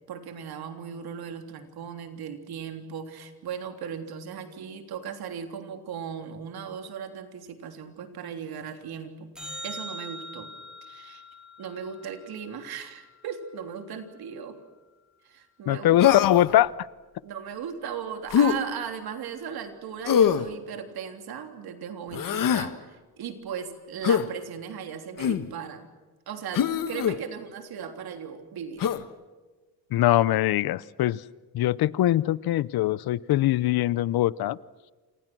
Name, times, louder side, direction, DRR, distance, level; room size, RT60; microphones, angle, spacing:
voice 1, 0.1-9.3 9.6-10.5 10.8-11.2 11.6-14.6 15.2-16.0 17.2-25.9 26.3-28.9, right 7 dB, 80° right, 6 dB, 3.4 m, -37 dB
sound 1, 9.4-13.8 20.4-20.5, equal, ahead, 5.5 m, -43 dB
voice 2, 15.7-16.7 29.9-31.2 31.5-34.6, left 14 dB, 80° left, 20 dB, 0.8 m, -22 dB
Human voice, 16.0-16.5 18.3-18.6 20.1-20.5 22.1-22.7 24.0-24.3 25.2-25.5 26.5-27.2 28.8-29.0, left 8 dB, 60° left, 1.4 m, -23 dB
29.0 x 27.5 x 6.2 m, 1.3 s
cardioid pair, 120°, 37 cm